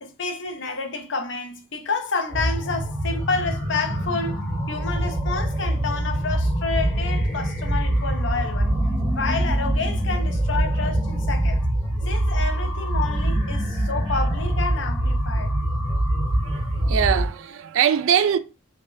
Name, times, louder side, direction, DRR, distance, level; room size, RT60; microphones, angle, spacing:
voice 1, 0.0-8.7 9.1-11.6 12.1-15.5, left 4 dB, 60° left, 0.5 m, -29 dB
sound 1, 2.3-17.3, right 1 dB, 5° left, 1.1 m, -24 dB
voice 2, 16.1-18.4, right 8 dB, 70° right, 0.3 m, -23 dB
3.3 x 2.2 x 2.6 m
head